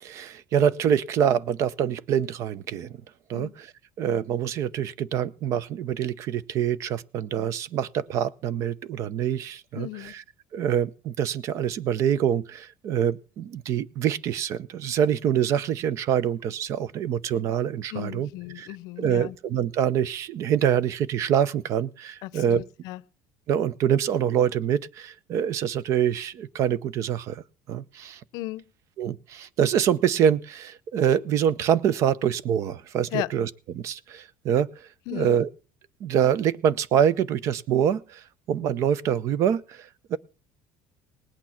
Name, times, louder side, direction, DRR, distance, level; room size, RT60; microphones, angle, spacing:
voice 1, 0.0-2.9 3.3-3.7 4.0-9.9 10.1-10.2 10.5-18.3 18.6-18.7 19.0-22.6 23.5-27.4 27.7-28.2 29.0-33.5 33.7-34.7 35.1-35.5 36.0-38.2 38.5-40.2, right 9 dB, 45° right, 0.6 m, -25 dB
voice 2, 9.7-10.1 17.9-19.3 22.2-23.0 28.3-28.6 33.1-33.3 35.1-35.4, left 18 dB, 65° left, 0.6 m, -35 dB
19.0 x 8.7 x 5.8 m
cardioid pair, 160°, 7 cm